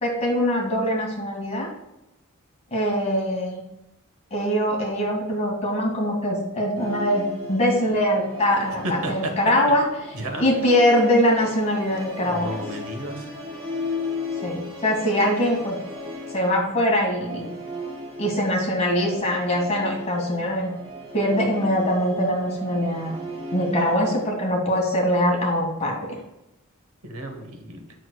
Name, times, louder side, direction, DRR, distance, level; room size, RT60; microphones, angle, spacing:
voice 1, 0.0-1.7 2.7-3.6 4.3-9.9 10.4-12.6 14.4-15.8 16.3-17.5 18.2-20.7 21.1-23.2 23.5-26.0, equal, 30° left, -1 dB, 1.7 m, -22 dB
Musical instrument, 6.7-24.4, left 1 dB, 30° right, 2.4 m, -36 dB
voice 2, 8.8-9.3 10.1-10.4 12.2-13.3 27.0-27.9, right 1 dB, 75° right, 5 dB, 1.0 m, -32 dB
7.9 x 6.3 x 2.2 m, 0.90 s
head